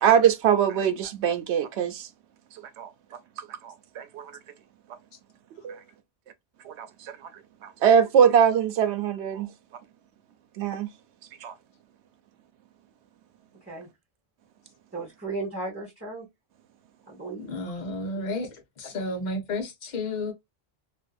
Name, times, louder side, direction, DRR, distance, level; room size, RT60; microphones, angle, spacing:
voice 1, 0.0-2.1 2.5-2.9 3.6-4.3 5.5-5.8 6.7-7.1 7.6-9.5 10.6-10.9 11.4-11.5, right 8 dB, 85° right, 0.9 m, -23 dB
voice 2, 14.9-16.3 17.1-17.5, right 2 dB, 15° right, 0.8 m, -35 dB
voice 3, 17.4-20.3, left 2 dB, 45° left, 0.8 m, -32 dB
2.5 x 2.4 x 2.3 m
omnidirectional pair, 1.1 m